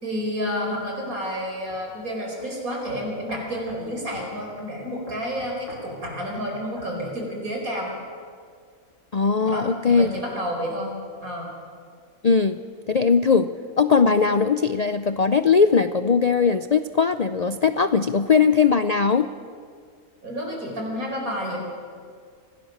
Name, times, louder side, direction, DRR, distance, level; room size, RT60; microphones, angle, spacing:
voice 1, 0.0-7.9 9.5-10.9 11.2-11.5 20.2-21.6, equal, 85° right, 0 dB, 5.2 m, -30 dB
sound 1, 1.7-1.8 2.4-2.5 2.8-3.9 4.1-4.3 5.1-6.2 6.8-6.9, equal, 60° right, 7.8 m, -43 dB
voice 2, 9.1-10.1 12.2-12.6 12.9-13.5 13.8-19.3, left 5 dB, 60° left, 10 dB, 0.4 m, -19 dB
25.0 x 17.0 x 6.6 m, 2.1 s
omnidirectional pair, 1.5 m